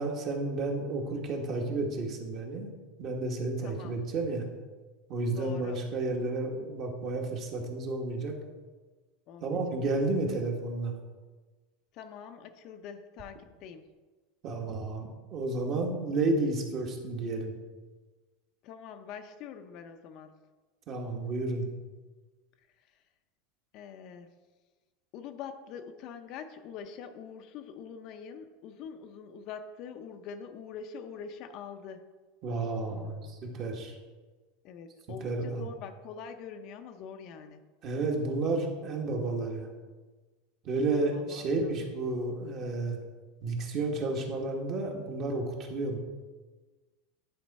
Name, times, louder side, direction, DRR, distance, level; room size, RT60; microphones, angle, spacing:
voice 1, 0.0-2.7 3.0-4.5 5.1-8.3 9.4-10.9 14.4-17.5 20.9-21.7 32.4-34.0 35.2-35.7 37.8-39.7 40.6-43.0 43.4-46.0, right 2 dB, 40° right, 1 dB, 1.5 m, -31 dB
voice 2, 3.6-4.0 5.3-5.8 9.3-10.0 11.9-13.9 18.6-20.4 23.7-24.3 25.1-32.1 32.9-33.3 34.6-37.6 41.1-41.9, left 6 dB, 50° left, 7 dB, 0.6 m, -44 dB
10.5 x 4.4 x 4.2 m, 1.3 s
supercardioid pair, 135°, 0 cm